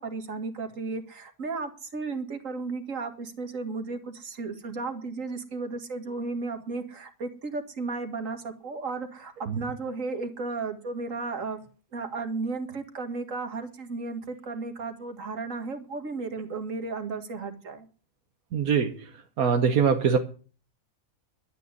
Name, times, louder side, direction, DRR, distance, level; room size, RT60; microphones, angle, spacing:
voice 1, 0.0-11.6 11.9-17.9, right 3 dB, 65° right, 7 dB, 2.2 m, -34 dB
voice 2, 18.5-19.1 19.4-20.2, right 6 dB, 80° right, 5 dB, 1.5 m, -23 dB
12.0 x 9.4 x 8.3 m, 0.39 s
omnidirectional pair, 1.5 m